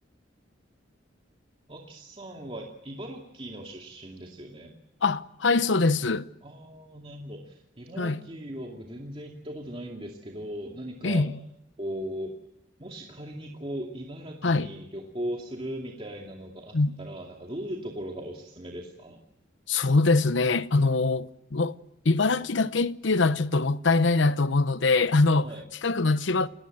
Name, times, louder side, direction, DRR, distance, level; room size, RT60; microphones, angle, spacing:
voice 1, 1.7-4.8 6.4-11.3 11.8-12.3 12.8-19.2 25.4-25.7, equal, 30° right, 2.5 m, -38 dB
voice 2, 5.0-6.3 8.0-8.2 11.0-11.4 14.4-14.7 16.7-17.0 19.7-21.7 22.0-25.5 25.8-26.5, left 3 dB, 70° left, 0.9 m, -23 dB
29.5 x 19.5 x 7.8 m
head